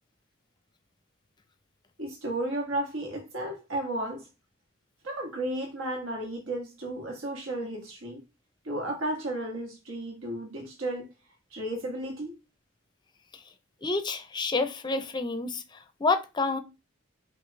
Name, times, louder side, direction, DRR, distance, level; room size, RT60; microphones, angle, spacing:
voice 1, 2.0-4.3 5.0-8.2 8.6-11.1 11.5-12.3, right 1 dB, 85° right, 1.6 m, -33 dB
voice 2, 13.8-16.6, left 3 dB, 20° left, 0.5 m, -29 dB
5.9 x 2.4 x 3.1 m
head